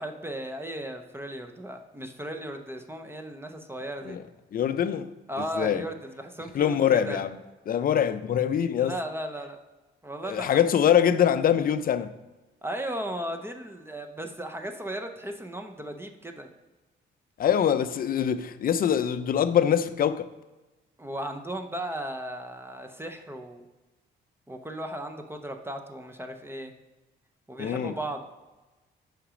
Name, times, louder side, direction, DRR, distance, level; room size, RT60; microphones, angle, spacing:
voice 1, 0.0-4.2 5.3-7.2 8.8-9.6 10.0-10.6 12.6-16.5 21.0-23.7 24.5-26.7 27.5-28.2, right 1 dB, 10° right, 0.7 m, -36 dB
voice 2, 4.5-5.1 5.6-5.8 6.5-7.4 7.7-8.9 10.3-12.1 17.4-20.3 27.6-27.9, left 9 dB, 45° left, 0.5 m, -24 dB
5.9 x 5.1 x 4.9 m
cardioid pair, 90°, 20 cm